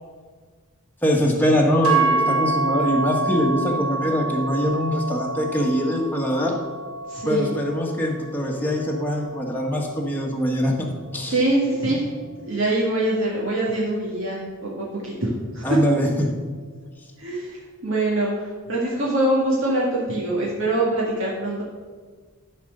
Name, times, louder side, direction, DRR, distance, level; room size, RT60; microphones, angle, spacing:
voice 1, 1.0-6.6 7.2-10.9 11.1-11.4 15.6-16.3, equal, 10° left, -1 dB, 1.3 m, -23 dB
sound 1, 1.8-10.1, right 3 dB, 85° right, 2.0 m, -27 dB
voice 2, 7.1-7.5 11.2-12.1 12.4-15.9 17.2-21.6, right 1 dB, 65° right, -5 dB, 2.0 m, -24 dB
13.0 x 4.4 x 6.6 m, 1.5 s
head